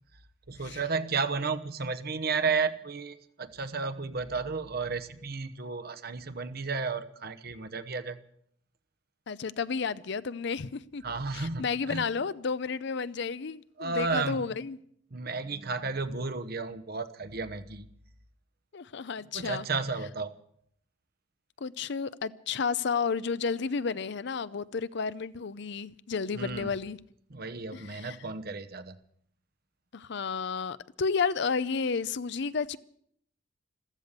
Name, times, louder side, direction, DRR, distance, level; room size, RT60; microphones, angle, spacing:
voice 1, 0.5-8.2 11.0-12.1 13.8-14.4 15.1-17.9 19.3-20.3 26.4-26.7 27.3-29.0, right 4 dB, 55° right, 1.0 m, -33 dB
voice 2, 9.3-11.0 11.3-14.8 18.7-19.7 21.6-27.0 27.7-28.2 29.9-32.8, left 5 dB, 65° left, 0.6 m, -32 dB
14.5 x 14.0 x 6.7 m
head